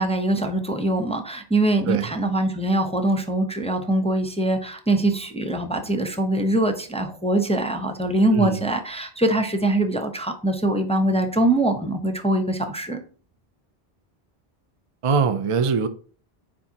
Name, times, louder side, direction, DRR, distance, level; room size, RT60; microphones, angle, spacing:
voice 1, 0.0-13.0, right 1 dB, 5° left, 0.6 m, -23 dB
voice 2, 8.3-8.7 15.0-15.9, right 5 dB, 40° right, 0.5 m, -22 dB
8.7 x 4.8 x 2.8 m
omnidirectional pair, 1.1 m